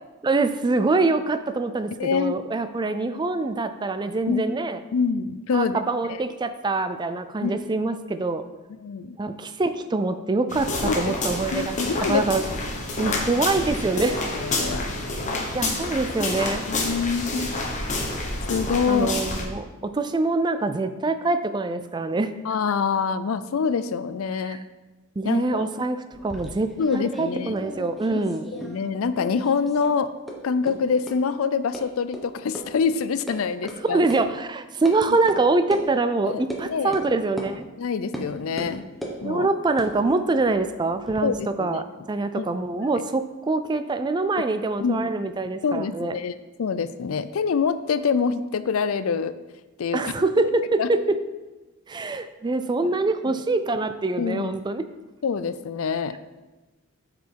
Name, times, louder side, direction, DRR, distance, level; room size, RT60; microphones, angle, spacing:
voice 1, 0.2-4.8 5.5-8.4 9.2-12.4 13.0-14.2 15.5-16.6 18.9-22.3 24.4-24.6 25.2-28.5 33.8-37.7 39.2-46.2 49.9-51.2 51.9-54.8, right 3 dB, 20° right, 10 dB, 0.4 m, -25 dB
voice 2, 2.0-2.4 4.3-4.6 4.9-5.8 6.1-6.2 7.4-7.6 8.8-9.2 10.8-12.3 13.0-13.2 14.3-14.8 16.7-17.5 18.5-19.2 22.4-24.6 25.2-25.7 26.8-27.6 28.1-28.2 28.5-30.1 30.4-34.0 36.2-37.0 37.8-38.9 39.2-39.5 41.2-41.8 42.3-42.5 44.8-45.1 45.6-46.3 46.6-49.3 49.8-50.1 50.8-50.9 52.8-52.9 54.1-54.5 55.2-56.2, left 5 dB, 85° left, 13 dB, 0.4 m, -25 dB
sound 1, 10.5-19.5, left 2 dB, 35° left, 1.2 m, -28 dB
sound 2, 26.1-28.9 29.2-29.9 30.3-30.4 30.7-30.8 31.1-31.2 31.7-31.8 32.1-32.2 32.6-32.7 33.0-33.4 33.7-33.8 34.1-34.2 34.9-35.0 35.3-35.4 35.7-35.8 36.5-36.6 36.9-37.1 37.4-37.5 38.1-38.3 38.6-39.2 39.7-41.2, equal, ahead, 1.0 m, -36 dB
8.1 x 5.1 x 4.6 m, 1.1 s
head